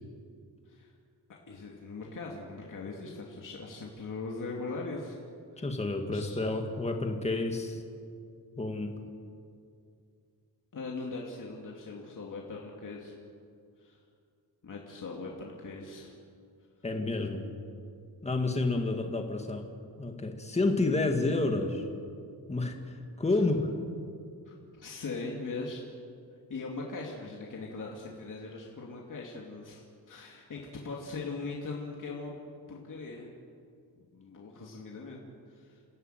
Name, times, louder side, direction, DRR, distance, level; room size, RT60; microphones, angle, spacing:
voice 1, 1.3-5.2 5.5-5.6 6.1-6.4 10.7-13.1 13.8-14.0 14.6-16.1 23.3-23.4 24.5-25.8 26.5-32.3 32.7-33.3 34.0-35.2 35.5-35.8, left 3 dB, 50° left, -2 dB, 2.7 m, -40 dB
voice 2, 5.6-7.8 8.6-9.0 16.8-17.5 18.2-19.7 20.0-21.9 22.5-23.7, left 2 dB, 15° left, 3 dB, 2.0 m, -30 dB
28.5 x 16.5 x 9.2 m, 2.3 s
wide cardioid pair, 180°, 40 cm